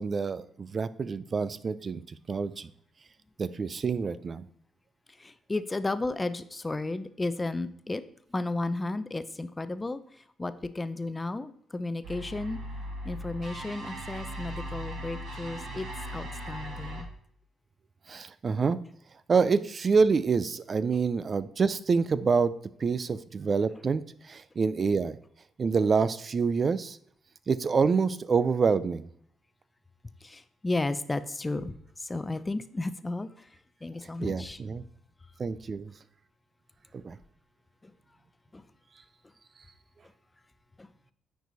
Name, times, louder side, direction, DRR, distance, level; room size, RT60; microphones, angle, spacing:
voice 1, 0.0-2.7 3.4-4.5 18.1-18.8 19.3-22.5 22.8-25.2 25.6-27.0 27.5-29.0 34.2-34.8 35.4-35.9 36.9-37.2, right 5 dB, 40° right, 16 dB, 0.4 m, -27 dB
voice 2, 5.2-8.0 8.3-12.6 13.0-17.1 30.2-33.5 33.8-34.6 37.8-37.9 38.5-38.6 40.8-40.9, left 2 dB, 20° left, 13 dB, 0.6 m, -33 dB
sound 1, 12.0-17.0, equal, 70° right, 2.9 m, -38 dB
9.1 x 4.6 x 4.0 m, 0.64 s
cardioid pair, 90°, 0 cm